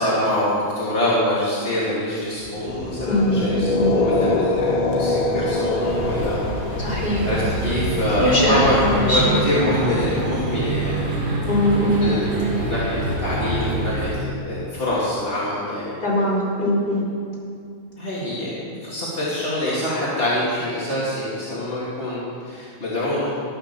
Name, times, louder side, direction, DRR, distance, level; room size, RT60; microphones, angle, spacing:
voice 1, 0.0-6.4 6.8-8.8 9.0-11.1 12.0-15.9 18.0-23.4, left 1 dB, 25° left, -9 dB, 1.2 m, -25 dB
sound 1, 2.5-10.6, left 2 dB, 80° left, 3.7 m, -25 dB
voice 2, 3.1-3.4 3.7-3.9 6.8-7.3 8.2-9.4 11.4-12.1 16.0-17.0, equal, 10° left, -8 dB, 3.3 m, -20 dB
sound 2, 5.8-14.2, right 2 dB, 40° right, 3.1 m, -26 dB
12.5 x 9.2 x 6.9 m, 2.4 s
omnidirectional pair, 5.4 m